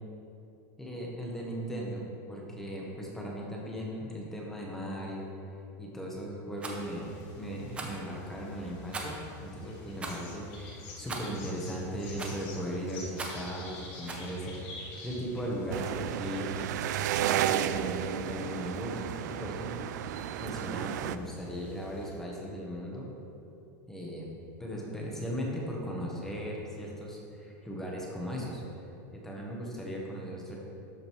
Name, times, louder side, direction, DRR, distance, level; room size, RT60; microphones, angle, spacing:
voice 1, 0.8-16.7 17.2-19.8 20.1-23.1 23.9-24.3 24.6-28.6 29.1-30.6, equal, 5° left, -3 dB, 1.3 m, -38 dB
Rattle, 6.6-6.8 7.7-8.0 8.9-9.3 10.0-10.2 11.1-11.4 12.2-12.5 13.2-13.5 14.1-14.3, right 3 dB, 10° right, 0.8 m, -39 dB
sound 1, 6.7-22.2, left 2 dB, 45° left, 2.0 m, -48 dB
sound 2, 15.7-21.2, right 11 dB, 80° right, 0.4 m, -32 dB
13.0 x 5.2 x 4.7 m, 2.6 s
supercardioid pair, 170°, 9 cm